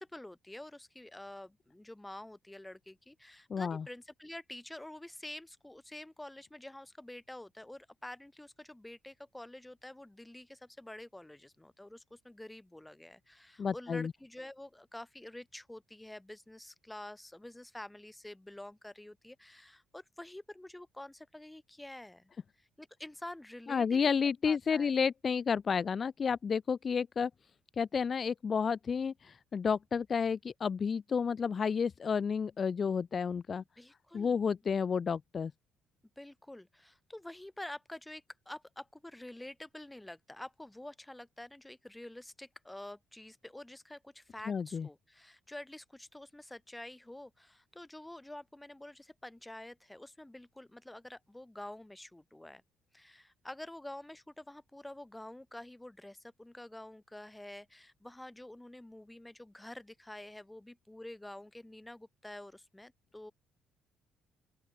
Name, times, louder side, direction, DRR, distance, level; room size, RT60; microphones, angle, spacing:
voice 1, 0.0-22.3 22.6-24.1 24.4-24.9 33.6-34.4 36.2-52.6 52.9-63.3, left 1 dB, 5° left, 5.9 m, -48 dB
voice 2, 3.5-3.8 13.6-14.1 23.7-27.3 27.8-33.6 34.1-35.5 44.5-44.9, left 6 dB, 30° left, 1.4 m, -31 dB
open air
cardioid pair, 175°, 0 cm